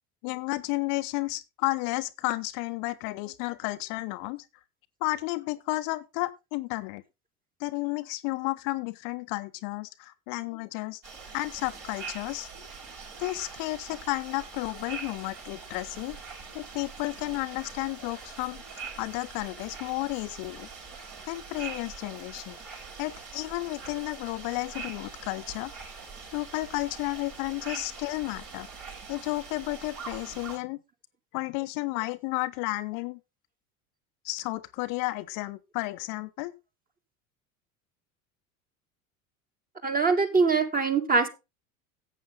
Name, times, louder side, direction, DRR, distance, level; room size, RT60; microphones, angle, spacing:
voice 1, 0.2-4.4 5.0-7.0 7.6-11.0 11.3-12.5 13.2-16.2 16.5-21.0 21.3-22.6 23.0-25.7 26.3-28.7 29.1-30.8 31.3-33.2 34.2-36.5, left 21 dB, 50° left, 0.9 m, -32 dB
sound 1, 11.0-30.6, right 5 dB, 45° right, 5.5 m, -43 dB
voice 2, 39.8-41.3, right 4 dB, 20° right, 2.5 m, -23 dB
14.0 x 8.3 x 3.8 m
figure-of-eight pair, 75°, 42 cm